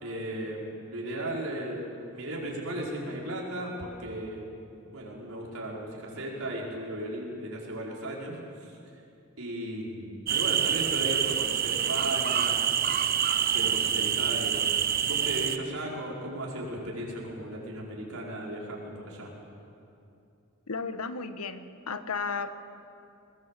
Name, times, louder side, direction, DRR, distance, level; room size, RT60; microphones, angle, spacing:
voice 1, 0.0-4.4 4.9-8.7 9.4-12.6 13.5-19.3, right 1 dB, 75° right, -3 dB, 4.9 m, -36 dB
sound 1, 10.3-15.6, right 9 dB, 40° right, 0.7 m, -26 dB
voice 2, 20.7-22.6, left 4 dB, 85° left, 10 dB, 1.2 m, -34 dB
21.5 x 21.5 x 7.5 m, 2.6 s
head